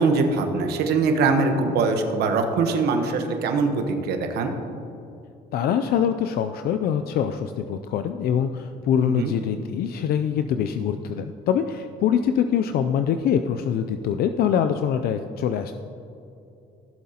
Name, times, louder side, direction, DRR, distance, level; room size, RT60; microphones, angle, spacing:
voice 1, 0.0-4.5 9.0-9.3, right 4 dB, 75° right, 5 dB, 1.1 m, -22 dB
voice 2, 5.5-15.7, left 8 dB, 65° left, 8 dB, 0.4 m, -24 dB
16.0 x 7.4 x 2.9 m, 2.7 s
cardioid pair, 110°, 17 cm